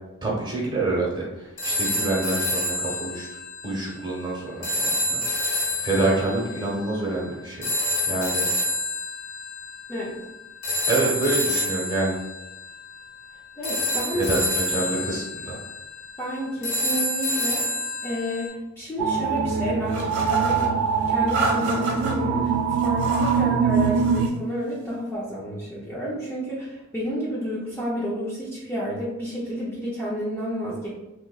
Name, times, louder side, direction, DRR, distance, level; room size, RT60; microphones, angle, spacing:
voice 1, 0.2-3.3 3.6-7.7 8.1-8.5 10.9-12.2 14.1-15.6, right 2 dB, 20° right, -5 dB, 1.1 m, -27 dB
sound 1, 1.6-18.5, left 1 dB, 65° left, 1.3 m, -28 dB
voice 2, 13.6-14.2 16.2-17.6 18.0-20.7 21.1-30.9, equal, 10° left, -7 dB, 0.6 m, -30 dB
sound 2, 19.0-24.3, right 6 dB, 85° right, 0.4 m, -23 dB
sound 3, 19.9-20.7 21.3-22.1 22.8-23.4 23.7-24.3, right 3 dB, 55° right, 0.9 m, -29 dB
3.8 x 2.9 x 2.3 m, 0.99 s
head